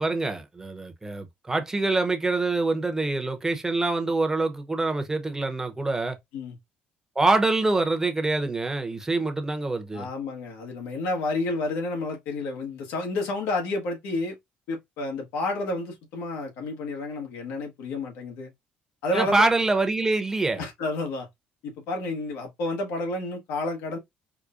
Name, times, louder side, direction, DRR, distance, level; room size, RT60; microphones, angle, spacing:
voice 1, 0.0-6.2 7.2-10.1 19.1-20.6, right 2 dB, 15° right, 0.8 m, -25 dB
voice 2, 9.9-14.4 14.7-18.5 19.0-19.4 20.6-21.3 21.6-24.0, left 2 dB, 85° left, 1.4 m, -30 dB
4.8 x 2.2 x 2.5 m
cardioid pair, 95°, 4 cm